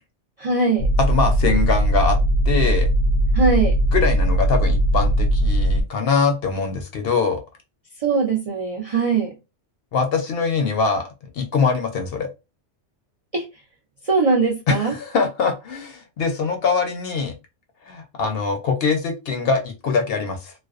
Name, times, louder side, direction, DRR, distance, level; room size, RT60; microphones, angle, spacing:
voice 1, 0.4-0.9 3.3-3.8 8.0-9.3 13.3-13.4 14.0-14.9, right 4 dB, 65° right, -1 dB, 0.3 m, -21 dB
sound 1, 0.8-5.8, right 1 dB, 80° right, 0.9 m, -19 dB
voice 2, 1.1-2.2 2.5-2.9 3.9-7.4 9.9-11.0 11.3-12.3 14.7-17.3 17.9-20.5, left 5 dB, 65° left, 5 dB, 0.7 m, -23 dB
2.5 x 2.1 x 2.3 m, 0.26 s
omnidirectional pair, 1.2 m